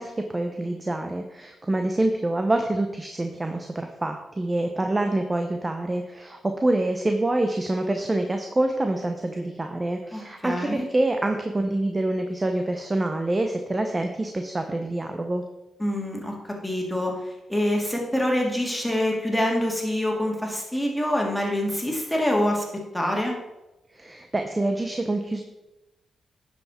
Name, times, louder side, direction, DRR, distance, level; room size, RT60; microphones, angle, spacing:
voice 1, 0.0-15.4 23.9-25.4, right 2 dB, 25° right, 5 dB, 0.9 m, -26 dB
voice 2, 10.1-10.9 15.8-17.1 17.5-22.6 22.9-23.4, left 1 dB, 5° left, -1 dB, 2.5 m, -25 dB
10.0 x 5.8 x 4.4 m, 0.99 s
supercardioid pair, 60°, 0 cm